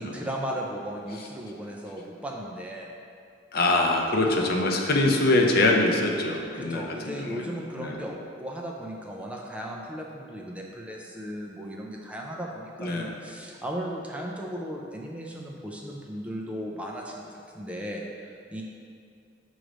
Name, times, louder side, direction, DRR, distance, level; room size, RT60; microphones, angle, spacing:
voice 1, 0.0-2.9 4.3-4.5 6.5-18.6, equal, 5° right, -2 dB, 0.4 m, -36 dB
voice 2, 3.5-7.5 7.7-8.0 12.8-13.1, left 2 dB, 55° left, 1 dB, 0.6 m, -23 dB
6.4 x 3.1 x 4.9 m, 2.4 s
head